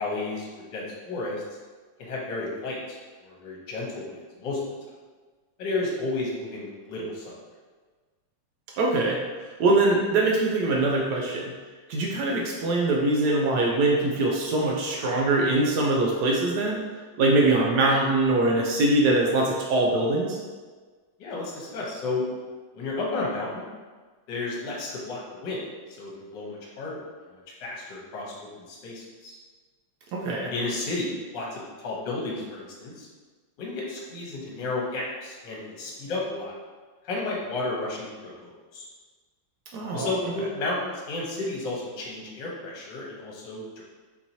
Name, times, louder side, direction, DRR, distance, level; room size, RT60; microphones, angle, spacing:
voice 1, 0.0-1.4 2.0-4.6 5.6-7.3 21.2-22.2 22.7-23.6 24.3-25.6 26.0-27.0 27.6-29.3 30.5-33.1 33.6-36.5 37.0-38.8 39.9-43.8, left 2 dB, 65° left, -4 dB, 1.5 m, -32 dB
voice 2, 8.7-9.2 9.5-11.4 11.9-16.8 17.2-20.4 30.1-30.5 39.7-40.1, right 2 dB, 75° right, -1 dB, 0.9 m, -23 dB
4.4 x 2.8 x 2.7 m, 1.4 s
omnidirectional pair, 2.2 m